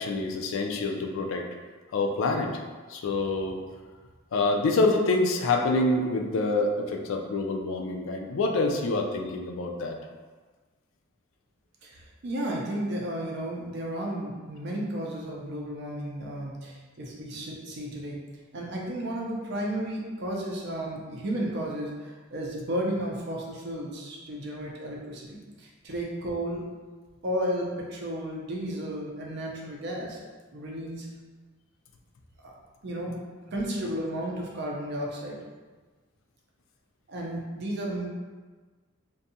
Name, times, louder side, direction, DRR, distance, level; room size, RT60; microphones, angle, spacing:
voice 1, 0.0-1.4 1.9-2.5 2.9-3.6 4.3-10.0, left 2 dB, 70° left, 3 dB, 0.3 m, -26 dB
voice 2, 11.8-18.2 18.5-26.6 27.2-30.2 30.5-31.1 32.4-32.5 32.8-33.2 33.5-35.4 37.1-38.1, right 1 dB, 55° right, -2 dB, 0.5 m, -33 dB
2.6 x 2.3 x 2.6 m, 1.4 s
head